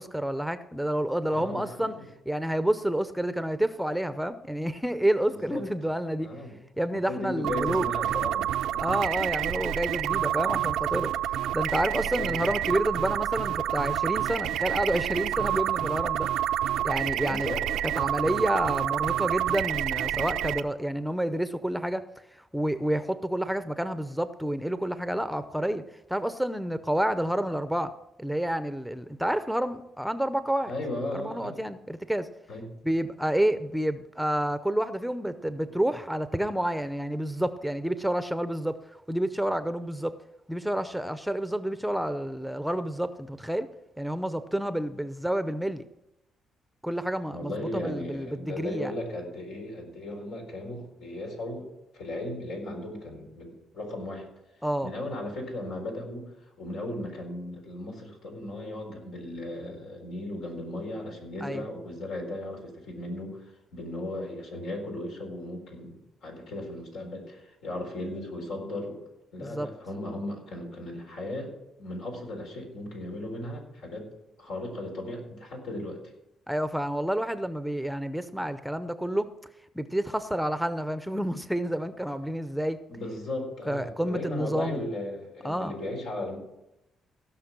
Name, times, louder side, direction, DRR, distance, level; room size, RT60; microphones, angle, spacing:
voice 1, 0.0-1.9 2.3-6.3 6.8-7.9 8.8-11.1 11.5-16.3 16.8-17.5 17.8-25.8 26.1-27.9 28.2-30.7 31.1-32.3 32.8-40.2 40.5-43.7 44.0-45.8 46.8-48.9 54.6-54.9 61.4-61.6 69.4-69.7 76.5-79.3 79.7-82.8 83.7-84.9 85.4-85.7, right 1 dB, ahead, 11 dB, 0.6 m, -29 dB
voice 2, 1.3-2.0 5.3-5.7 6.2-6.6 6.9-8.9 9.7-9.8 12.0-12.5 17.3-17.7 30.7-31.6 32.5-32.7 47.3-54.3 54.8-69.0 69.3-71.5 71.8-74.1 74.4-76.0 82.9-86.4, left 1 dB, 85° left, 1 dB, 4.3 m, -36 dB
sound 1, 7.4-20.6, right 12 dB, 85° right, 0.5 m, -28 dB
16.5 x 6.0 x 6.0 m, 0.88 s
cardioid pair, 90°, 0 cm